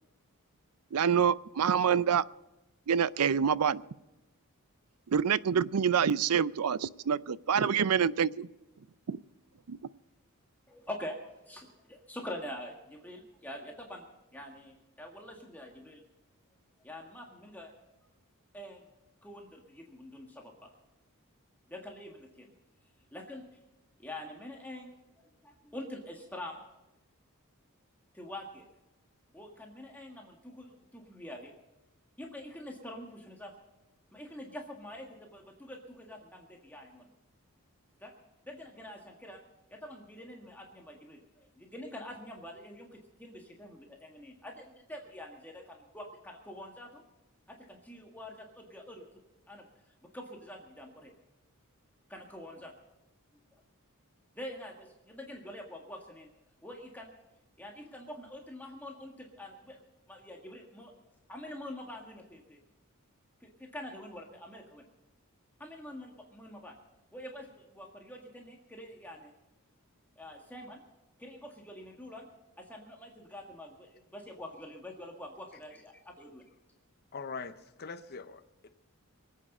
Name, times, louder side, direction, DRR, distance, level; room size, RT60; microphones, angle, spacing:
voice 1, 0.9-2.2 2.9-3.8 5.1-8.5 9.1-9.2 9.7-9.8, right 7 dB, 85° right, 18 dB, 0.5 m, -26 dB
voice 2, 10.7-14.1 14.3-16.0 16.8-17.7 18.5-18.9 19.2-20.7 21.7-22.5 23.1-23.4 24.0-26.6 28.1-28.6 29.3-31.5 32.2-33.5 34.1-37.1 38.0-38.1 38.5-39.4 39.7-47.0 47.5-49.0 49.5-49.7 50.0-51.1 52.1-52.7 54.3-56.3 56.6-57.1 57.6-60.9 61.3-62.6 63.4-64.9 65.6-66.8 67.1-69.3 70.2-70.8 71.2-72.3 72.6-76.4, left 1 dB, 10° left, 0 dB, 1.7 m, -45 dB
voice 3, 77.1-78.7, left 4 dB, 45° left, 7 dB, 0.8 m, -42 dB
23.5 x 8.7 x 5.4 m, 0.99 s
head